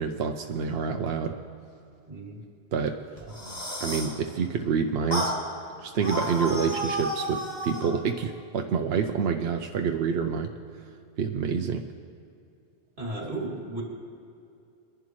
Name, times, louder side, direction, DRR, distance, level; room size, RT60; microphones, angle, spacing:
voice 1, 0.0-1.3 2.7-2.9 3.8-5.3 5.8-10.5 11.2-11.8, right 6 dB, 70° right, 4 dB, 0.8 m, -27 dB
voice 2, 2.1-2.4 3.4-3.6 13.0-13.8, right 2 dB, 50° right, -2 dB, 2.7 m, -35 dB
sound 1, 3.2-4.2 5.1-5.4 6.0-7.9, equal, 40° left, 2.3 m, -31 dB
23.0 x 11.0 x 3.1 m, 2.5 s
omnidirectional pair, 1.1 m